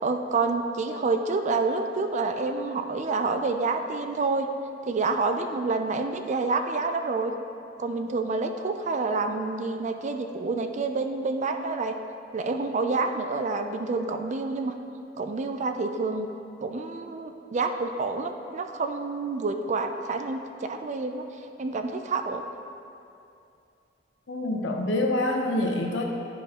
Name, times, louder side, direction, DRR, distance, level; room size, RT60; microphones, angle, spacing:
voice 1, 0.0-4.5 4.9-7.3 7.8-11.9 12.3-14.7 15.2-16.3 16.6-21.2 21.6-22.4, right 3 dB, 40° right, 6 dB, 0.4 m, -28 dB
voice 2, 24.3-26.0, left 1 dB, 75° left, 1 dB, 0.8 m, -26 dB
11.0 x 5.0 x 2.9 m, 2.6 s
head